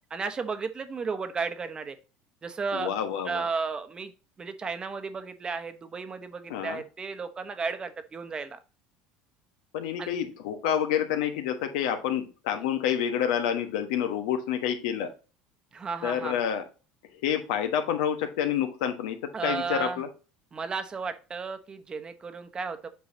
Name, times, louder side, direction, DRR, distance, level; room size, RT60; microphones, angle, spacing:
voice 1, 0.1-2.0 2.4-2.9 3.2-4.1 4.4-8.6 10.0-10.1 15.7-16.4 19.3-20.0 20.5-22.9, right 5 dB, 25° right, 9 dB, 1.0 m, -33 dB
voice 2, 2.7-3.5 6.5-6.8 9.7-15.1 16.0-16.7 17.1-20.1, left 9 dB, 85° left, 7 dB, 1.3 m, -28 dB
8.1 x 4.8 x 2.8 m, 0.33 s
supercardioid pair, 115°, 3 cm